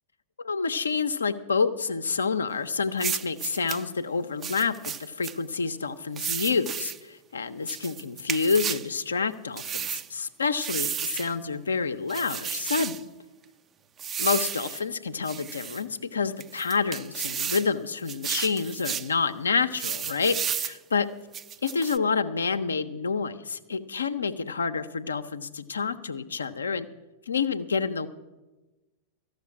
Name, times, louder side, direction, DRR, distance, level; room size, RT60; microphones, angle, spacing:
voice 1, 0.4-13.1 14.2-21.1 21.6-26.9 27.3-28.1, left 5 dB, 80° left, 9 dB, 0.7 m, -28 dB
sound 1, 3.0-3.8 4.4-5.4 6.2-7.0 7.7-8.9 9.6-10.1 10.6-11.3 12.1-13.0 14.0-14.8 15.2-15.8 16.4-17.7 18.1-19.1 19.7-20.8 21.3-22.0, right 8 dB, 25° right, 0.5 m, -32 dB
13.5 x 6.7 x 9.5 m, 1.1 s
figure-of-eight pair, 95°, 0 cm